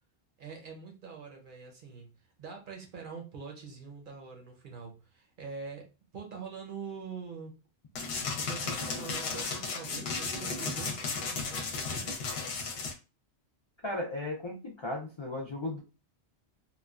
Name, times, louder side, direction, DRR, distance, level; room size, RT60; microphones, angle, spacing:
voice 1, 0.4-7.5 8.4-12.2, right 5 dB, 55° right, 2 dB, 0.7 m, -44 dB
sound 1, 7.9-12.9, left 4 dB, 65° left, 0.8 m, -34 dB
voice 2, 13.8-15.8, left 1 dB, 50° left, 0 dB, 0.3 m, -36 dB
2.9 x 2.2 x 2.3 m, 0.31 s
omnidirectional pair, 1.2 m